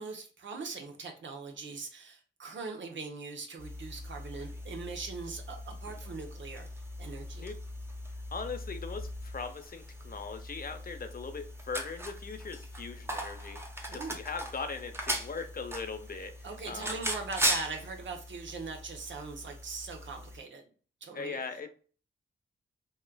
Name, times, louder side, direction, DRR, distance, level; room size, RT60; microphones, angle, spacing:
voice 1, 0.0-6.7 7.0-7.5 13.9-14.2 16.4-20.6 21.0-21.4, right 4 dB, 65° right, 3 dB, 0.9 m, -41 dB
sound 1, 3.6-20.4, equal, 10° right, 0.9 m, -39 dB
voice 2, 8.3-13.6 13.9-16.3 16.7-17.0 21.1-21.7, left 4 dB, 45° left, 7 dB, 0.7 m, -39 dB
4.2 x 2.4 x 2.2 m, 0.40 s
cardioid pair, 55°, 21 cm